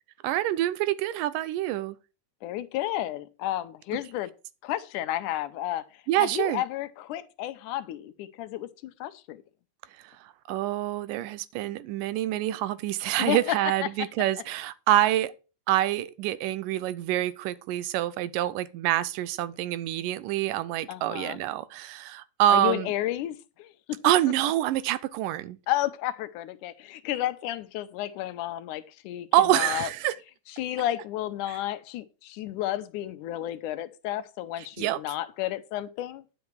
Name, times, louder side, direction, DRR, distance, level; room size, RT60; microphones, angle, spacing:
voice 1, 0.2-2.0 6.1-6.6 10.5-15.3 15.7-22.9 24.0-25.6 29.3-30.1 31.5-31.6 34.8-35.0, right 13 dB, 90° right, 2.4 m, -26 dB
voice 2, 2.4-4.3 4.6-5.8 6.2-9.4 13.2-14.1 20.9-21.4 22.5-24.0 25.7-29.3 29.5-29.9 30.5-36.2, left 13 dB, 80° left, 2.1 m, -32 dB
10.5 x 7.1 x 4.6 m
omnidirectional pair, 3.7 m